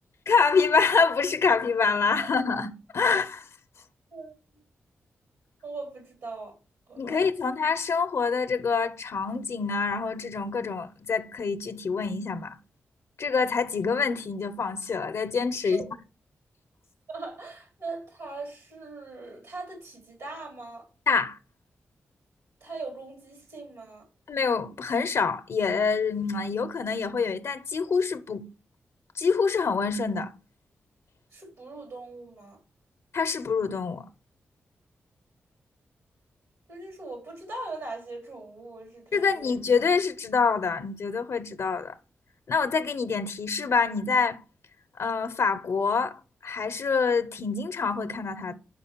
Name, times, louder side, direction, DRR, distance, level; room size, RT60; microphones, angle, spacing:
voice 1, 0.3-3.4 7.0-12.6 13.2-15.8 21.1-21.4 24.3-28.4 29.2-30.3 33.1-34.0 39.1-41.9 42.5-44.4 45.0-46.2 46.4-48.5, left 5 dB, 65° left, 0.6 m, -26 dB
voice 2, 5.6-6.6 6.9-7.3 15.6-15.9 17.1-20.9 22.6-24.1 31.3-32.6 36.7-39.6, right 3 dB, 80° right, 2.8 m, -40 dB
5.2 x 4.9 x 4.4 m
supercardioid pair, 45°, 5 cm